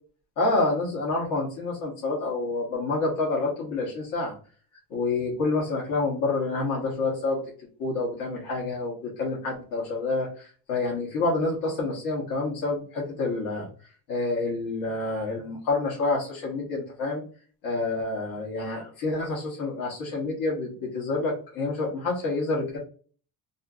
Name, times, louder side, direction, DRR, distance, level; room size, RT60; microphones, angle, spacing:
voice 1, 0.4-4.3 4.9-7.4 7.8-13.7 14.1-17.2 17.6-22.8, left 3 dB, 70° left, -4 dB, 1.1 m, -28 dB
2.7 x 2.6 x 2.4 m, 0.41 s
cardioid pair, 165°, 38 cm